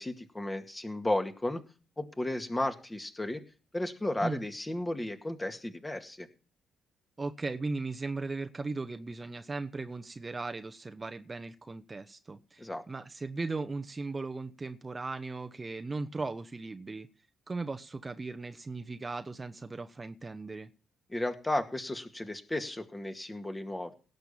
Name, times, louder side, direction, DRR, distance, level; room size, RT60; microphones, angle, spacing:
voice 1, 0.0-1.6 2.0-3.4 3.7-6.3 12.6-12.8 21.1-23.9, left 1 dB, 20° left, 2.1 m, -34 dB
voice 2, 7.2-17.1 17.5-20.7, right 3 dB, 30° right, 1.0 m, -37 dB
17.5 x 6.7 x 5.7 m
hypercardioid pair, 45°, 0 cm